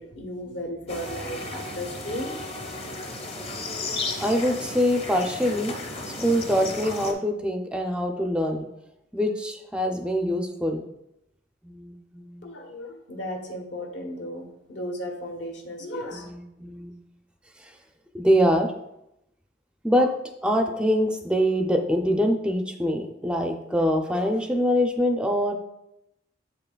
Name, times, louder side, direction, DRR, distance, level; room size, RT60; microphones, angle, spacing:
voice 1, 0.0-2.3 12.4-16.3, equal, 70° left, 2 dB, 1.0 m, -35 dB
sound 1, 0.9-7.1, left 2 dB, 30° left, 0.7 m, -34 dB
voice 2, 4.2-5.7 6.2-8.7 9.1-10.8 11.6-12.4 16.1-17.0 17.6-17.7 18.1-18.7 19.8-20.1 20.4-25.5, equal, 5° right, 3 dB, 0.4 m, -24 dB
7.5 x 5.5 x 2.2 m, 0.84 s
head